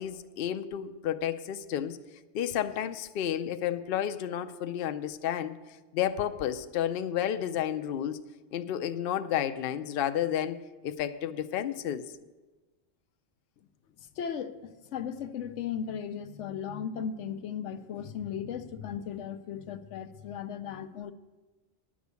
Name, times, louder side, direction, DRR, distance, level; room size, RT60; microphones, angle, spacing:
voice 1, 0.0-2.0 2.3-5.6 5.9-8.2 8.5-10.6 10.8-12.1, left 10 dB, 60° left, 9 dB, 0.7 m, -31 dB
voice 2, 14.0-21.1, left 8 dB, 90° left, 10 dB, 1.0 m, -36 dB
10.5 x 6.2 x 8.2 m, 1.2 s
omnidirectional pair, 1.2 m